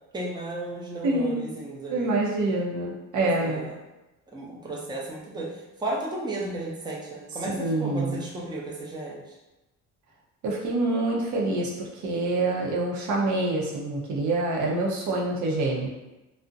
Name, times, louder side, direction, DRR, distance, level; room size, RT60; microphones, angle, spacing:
voice 1, 0.1-2.1 3.4-3.7 4.3-5.5 5.8-9.2, right 2 dB, 15° right, -4 dB, 0.6 m, -34 dB
voice 2, 1.0-1.4 1.9-3.8 7.5-8.2 10.4-15.9, right 2 dB, 75° right, -2 dB, 0.6 m, -26 dB
2.4 x 2.0 x 2.6 m, 1.0 s
cardioid pair, 90°, 30 cm